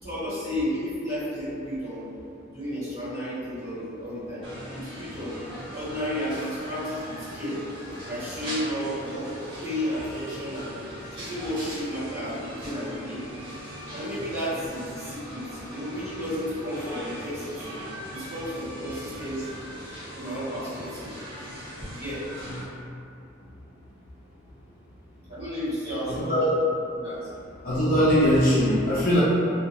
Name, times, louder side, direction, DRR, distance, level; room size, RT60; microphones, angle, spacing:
voice 1, 0.0-2.0 2.5-4.5 4.7-5.4 5.7-7.6 8.0-9.3 9.6-10.8 11.1-13.2 13.9-17.7 18.1-19.6 20.1-21.1 21.9-22.2 25.3-26.4 26.9-27.3, equal, 50° right, -13 dB, 1.2 m, -32 dB
sound 1, 4.4-22.6, equal, 25° right, 0.8 m, -40 dB
voice 2, 26.1-26.5 27.6-29.2, equal, 45° left, -9 dB, 0.4 m, -21 dB
2.4 x 2.1 x 2.9 m, 2.6 s
head